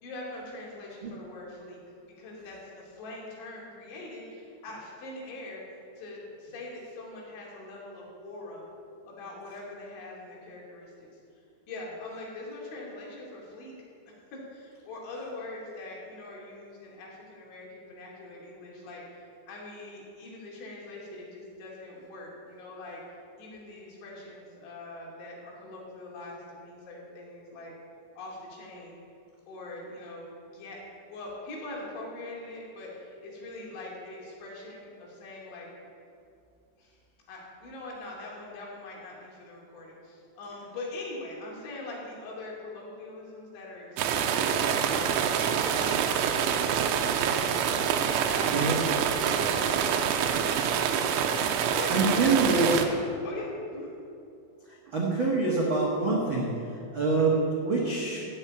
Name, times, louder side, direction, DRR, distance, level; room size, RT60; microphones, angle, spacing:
voice 1, 0.0-1.8 2.2-5.7 6.0-8.7 9.1-11.2 11.7-13.7 14.1-23.0 23.4-27.7 28.2-29.0 29.5-35.7 36.8-37.0 37.3-47.1 47.4-50.8 51.5-52.9 53.2-53.9, left 2 dB, 75° left, -3 dB, 5.2 m, -42 dB
sound 1, 44.0-52.8, right 8 dB, 85° right, 3.2 m, -26 dB
voice 2, 48.5-48.8 51.6-52.7 54.8-58.3, right 3 dB, 60° right, -4 dB, 1.3 m, -26 dB
15.5 x 6.6 x 8.9 m, 2.6 s
omnidirectional pair, 5.4 m